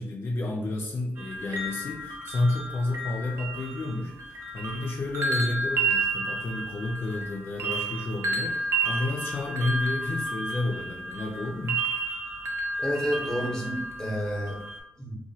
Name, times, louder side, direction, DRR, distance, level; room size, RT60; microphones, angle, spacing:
voice 1, 0.0-11.9, left 2 dB, 50° left, 0 dB, 0.4 m, -31 dB
sound 1, 1.2-14.8, right 2 dB, 65° right, 0.5 m, -31 dB
voice 2, 12.8-14.6 15.0-15.2, equal, 10° left, -1 dB, 0.8 m, -30 dB
2.8 x 2.2 x 2.7 m, 0.82 s
cardioid pair, 80°, 5 cm